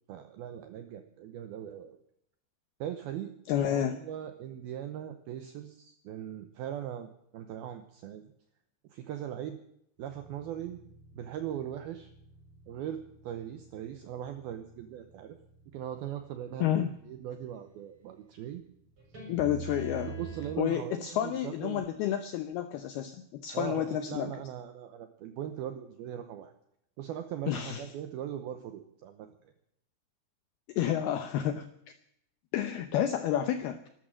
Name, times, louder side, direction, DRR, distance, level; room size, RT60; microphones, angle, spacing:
voice 1, 0.1-2.0 2.8-3.3 3.6-8.2 8.9-9.6 10.0-10.8 11.1-12.1 12.7-15.4 15.7-18.6 20.1-21.9 23.5-26.5 27.0-29.3, right 10 dB, 90° right, 8 dB, 2.2 m, -40 dB
voice 2, 3.5-4.0 16.6-16.9 19.3-20.2 20.6-24.3 27.5-27.8 30.7-31.7 32.5-33.9, left 10 dB, 85° left, 9 dB, 2.2 m, -30 dB
sound 1, 10.0-16.9 19.0-20.5, right 3 dB, 25° right, 6.9 m, -46 dB
13.0 x 12.5 x 7.6 m, 0.75 s
omnidirectional pair, 5.6 m